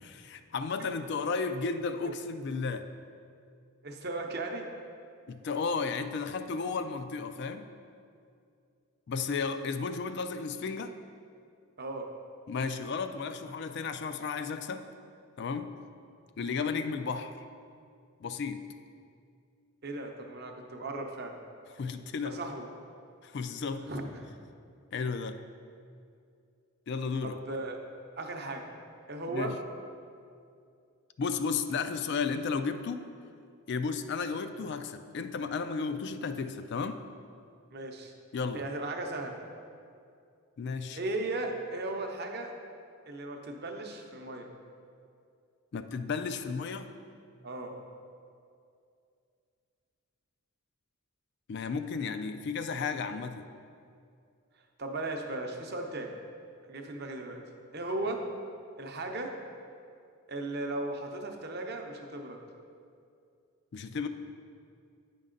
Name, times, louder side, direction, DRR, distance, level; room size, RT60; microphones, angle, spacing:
voice 1, 0.0-2.9 5.3-7.7 9.1-11.0 12.5-14.9 15.4-15.7 16.4-17.4 18.2-18.6 21.7-22.4 23.2-23.9 24.9-25.4 26.9-27.4 29.3-29.6 31.2-33.1 33.7-37.0 38.3-38.7 40.6-41.0 45.7-46.9 51.5-53.5 63.7-64.1, left 5 dB, 50° left, 9 dB, 0.3 m, -33 dB
voice 2, 3.8-4.7 11.8-12.1 19.8-21.4 22.2-22.7 23.9-24.3 27.2-27.8 28.2-28.7 29.1-29.5 37.7-38.1 38.5-39.4 40.9-42.5 43.1-44.5 47.4-47.8 54.8-56.1 56.7-57.4 57.7-58.2 58.8-59.3 60.3-62.4, right 2 dB, 50° right, 3 dB, 0.7 m, -36 dB
9.0 x 5.3 x 3.8 m, 2.4 s
head